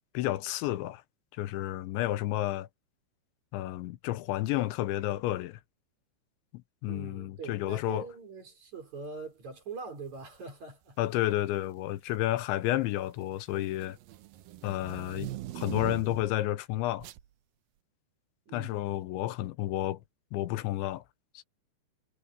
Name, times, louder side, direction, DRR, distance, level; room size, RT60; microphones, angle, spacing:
voice 1, 0.1-1.0 1.4-2.7 3.5-5.6 6.5-8.1 11.0-14.0 14.6-15.3 15.6-17.1 18.5-20.0 20.3-21.0 21.3-21.5, left 15 dB, 85° left, 3.3 m, -31 dB
voice 2, 6.9-11.0 18.5-18.8, right 4 dB, 40° right, 5.9 m, -43 dB
sound 1, 10.1-10.4 11.3-11.8 12.1-16.4 17.0-17.3, right 15 dB, 80° right, 2.2 m, -42 dB
omnidirectional pair, 5.2 m